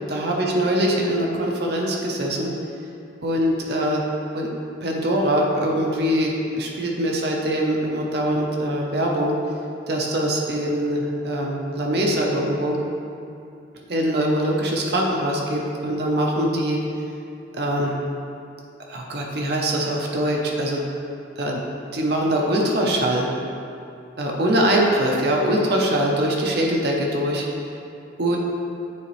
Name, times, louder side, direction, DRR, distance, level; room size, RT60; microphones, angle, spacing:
voice 1, 0.1-2.5 3.2-4.0 4.3-4.5 4.8-9.4 9.9-12.8 13.9-16.8 17.5-18.0 18.9-20.8 21.4-21.6 21.9-23.3 24.2-27.4 28.2-28.4, right 1 dB, 55° right, -1 dB, 0.7 m, -22 dB
8.5 x 4.0 x 3.2 m, 2.6 s
head